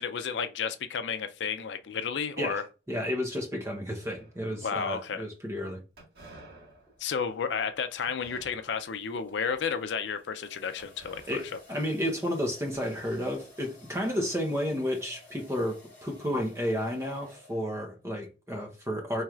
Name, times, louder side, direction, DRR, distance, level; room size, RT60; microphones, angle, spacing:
voice 1, 0.0-2.6 4.6-5.3 7.0-11.6, left 6 dB, 75° left, 0.4 m, -32 dB
voice 2, 2.9-5.8 11.3-19.2, equal, 15° right, 0.8 m, -32 dB
sound 1, 3.9-4.8 6.0-9.1 9.5-9.8 10.8-12.4 12.7-14.1, right 2 dB, 60° right, 1.8 m, -54 dB
sound 2, 6.8-7.1 8.7-17.9, left 2 dB, 10° left, 1.4 m, -56 dB
4.5 x 3.1 x 2.4 m
head